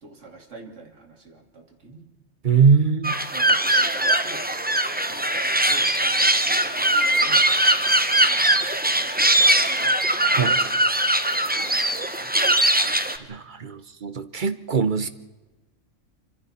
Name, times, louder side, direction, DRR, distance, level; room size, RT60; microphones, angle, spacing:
voice 1, 0.0-2.1 3.3-4.4 4.9-7.5 8.1-8.6 9.1-10.0 10.2-10.7 11.4-12.3 12.8-13.1, right 3 dB, 65° right, 3 dB, 2.7 m, -45 dB
voice 2, 2.4-3.1 10.3-10.6 13.3-15.1, right 6 dB, 40° right, 12 dB, 0.9 m, -21 dB
sound 1, 3.0-13.2, right 1 dB, 10° right, 0.7 m, -21 dB
27.0 x 25.0 x 4.3 m, 1.1 s
omnidirectional pair, 1.4 m